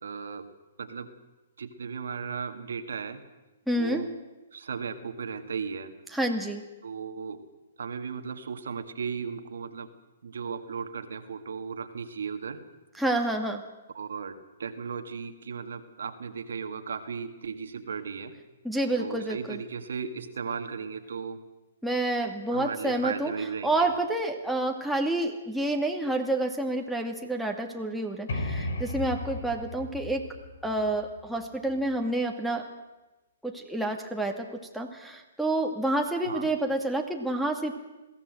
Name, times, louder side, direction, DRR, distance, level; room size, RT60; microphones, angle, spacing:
voice 1, 0.0-0.5 0.8-1.1 1.6-3.2 3.8-4.1 4.5-5.9 6.8-7.4 7.8-9.9 10.2-12.6 13.9-18.3 19.0-21.4 22.5-23.9 36.2-36.5, right 6 dB, 75° right, 7 dB, 1.9 m, -36 dB
voice 2, 3.7-4.0 6.1-6.6 13.0-13.6 18.6-19.6 21.8-23.3 23.6-30.3 30.6-32.7 33.4-34.5 34.7-37.7, right 1 dB, ahead, 0 dB, 2.2 m, -28 dB
sound 1, 28.3-31.9, left 2 dB, 65° left, 3.9 m, -35 dB
21.5 x 15.5 x 8.0 m, 1.1 s
hypercardioid pair, 125°, 0 cm